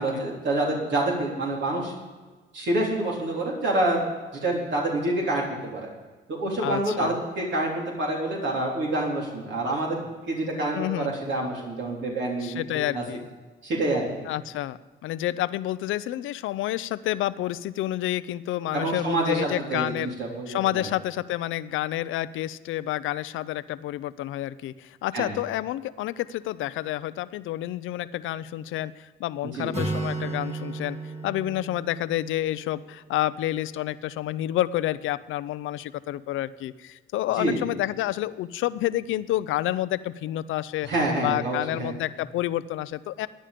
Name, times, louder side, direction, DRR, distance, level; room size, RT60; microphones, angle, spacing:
voice 1, 0.0-1.9 2.5-4.0 4.4-5.8 6.3-10.0 10.3-13.0 13.6-14.2 18.7-20.9 25.1-25.4 29.5-29.7 37.4-37.6 40.8-42.0, right 2 dB, 65° right, -2 dB, 3.6 m, -27 dB
voice 2, 6.6-7.2 10.7-11.1 12.4-13.3 14.3-20.1 20.5-31.0 31.2-40.9 41.2-43.3, left 14 dB, 85° left, 16 dB, 0.6 m, -29 dB
Acoustic guitar, 29.7-33.5, right 3 dB, 35° right, 2.5 m, -34 dB
15.5 x 10.0 x 5.1 m, 1.3 s
cardioid pair, 90°, 20 cm